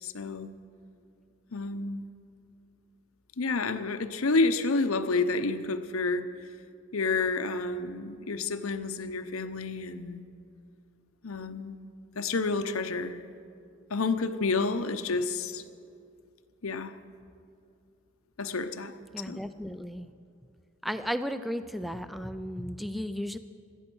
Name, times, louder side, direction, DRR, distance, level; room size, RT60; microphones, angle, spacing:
voice 1, 0.0-0.5 1.5-2.0 3.4-6.3 6.9-10.2 11.2-11.8 12.2-13.2 13.9-15.6 16.6-16.9 18.4-19.0 19.3-19.4, left 3 dB, 85° left, 9 dB, 0.8 m, -29 dB
voice 2, 19.1-20.1 20.8-23.4, equal, ahead, 11 dB, 0.4 m, -34 dB
17.5 x 12.5 x 6.2 m, 2.5 s
head